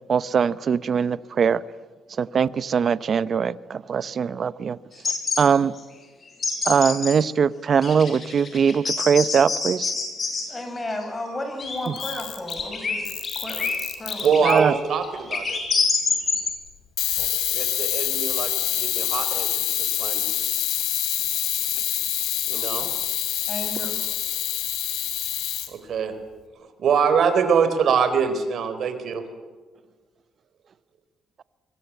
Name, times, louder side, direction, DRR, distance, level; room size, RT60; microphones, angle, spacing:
voice 1, 0.1-1.6 2.2-4.8 5.4-5.7 6.7-9.9 14.4-14.7, right 6 dB, 50° right, 17 dB, 0.8 m, -21 dB
sound 1, 4.9-5.4 5.7-5.8 6.3-7.1 7.8-10.4 11.0-12.1 12.4-16.5, left 4 dB, 45° left, 7.9 m, -26 dB
voice 2, 10.5-13.1 13.4-13.7 14.0-14.3 22.5-22.9 23.5-24.0, left 1 dB, 25° left, 5 dB, 7.3 m, -33 dB
Camera, 11.9-12.6 13.1-14.6 17.0-25.7, left 12 dB, 85° left, 3.2 m, -26 dB
voice 3, 14.2-15.6 17.5-20.5 22.4-22.9 25.7-26.1 26.8-29.2, right 6 dB, 65° right, 9 dB, 4.2 m, -24 dB
25.0 x 23.0 x 8.5 m, 1.4 s
cardioid pair, 90°, 0 cm